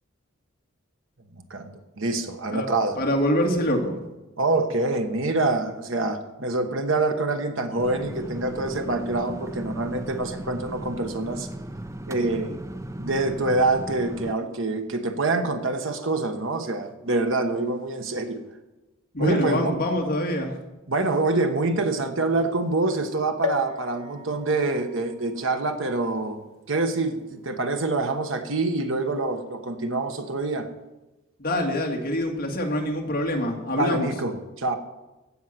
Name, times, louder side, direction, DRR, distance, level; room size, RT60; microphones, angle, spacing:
voice 1, 1.3-3.0 4.4-11.5 12.1-12.6 13.0-18.4 19.2-19.7 20.9-26.4 26.7-30.7 33.8-34.8, right 2 dB, 70° right, 6 dB, 1.3 m, -26 dB
voice 2, 3.0-4.0 19.1-20.6 31.4-34.1, equal, 45° left, 1 dB, 2.1 m, -25 dB
sound 1, 7.8-14.3, right 1 dB, 15° right, 0.5 m, -36 dB
sound 2, 23.4-27.1 27.7-27.8 28.0-28.1, left 5 dB, 85° left, 1.0 m, -36 dB
15.5 x 5.7 x 7.6 m, 1.1 s
head